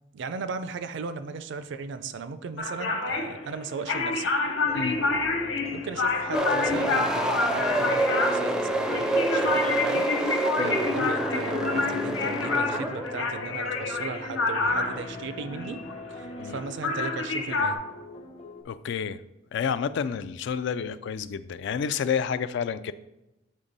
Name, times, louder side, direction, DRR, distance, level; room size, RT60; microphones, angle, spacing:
voice 1, 0.1-4.3 5.7-15.8 16.1-17.8, right 4 dB, 65° right, 12 dB, 0.4 m, -36 dB
sound 1, 2.6-16.6 16.8-17.8, left 3 dB, 85° left, 0.8 m, -28 dB
sound 2, 4.7-18.6, left 2 dB, 35° left, 0.7 m, -41 dB
sound 3, 6.3-15.0, right 1 dB, 5° right, 0.4 m, -28 dB
voice 2, 18.6-19.2 19.5-22.9, left 7 dB, 65° left, 14 dB, 0.3 m, -29 dB
7.4 x 3.5 x 4.0 m, 0.93 s
head